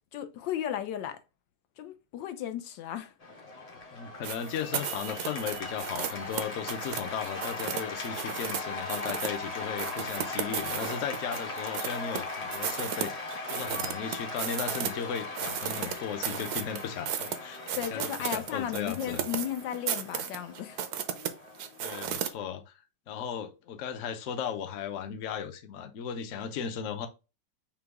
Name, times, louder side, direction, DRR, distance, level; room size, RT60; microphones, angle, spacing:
voice 1, 0.1-1.2 1.8-3.1 17.8-20.8, left 10 dB, 90° left, 1.4 m, -35 dB
Cheering / Applause, 3.2-22.5, left 3 dB, 35° left, 0.6 m, -39 dB
voice 2, 3.9-19.2 21.8-22.6 23.1-27.1, left 7 dB, 60° left, 0.9 m, -36 dB
sound 1, 4.2-8.6 8.9-9.4 9.8-12.2 12.5-14.9 15.2-22.3, right 9 dB, 70° right, 1.1 m, -34 dB
sound 2, 5.6-6.3 6.7-7.8 9.0-9.1 9.6-10.6 12.0-13.1, right 3 dB, 90° right, 1.6 m, -49 dB
5.9 x 2.3 x 3.5 m
omnidirectional pair, 1.9 m